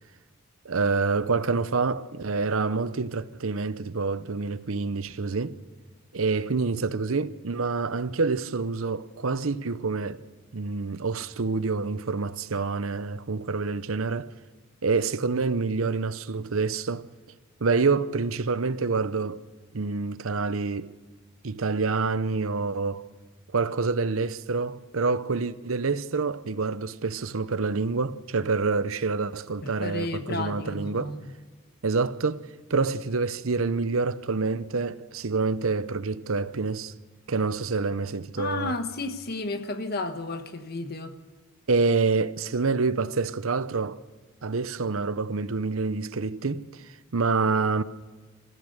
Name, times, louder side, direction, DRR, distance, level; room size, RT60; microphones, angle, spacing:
voice 1, 0.6-5.6 6.1-10.2 10.5-14.3 14.8-17.1 17.6-19.4 19.7-20.9 21.4-23.0 23.5-31.1 31.8-36.9 37.3-38.7 41.7-44.0 44.4-46.8 47.1-47.8, right 4 dB, 75° right, 0.8 m, -27 dB
voice 2, 29.6-31.3 38.4-41.2, left 2 dB, 45° left, 1.4 m, -32 dB
27.0 x 15.5 x 6.7 m
head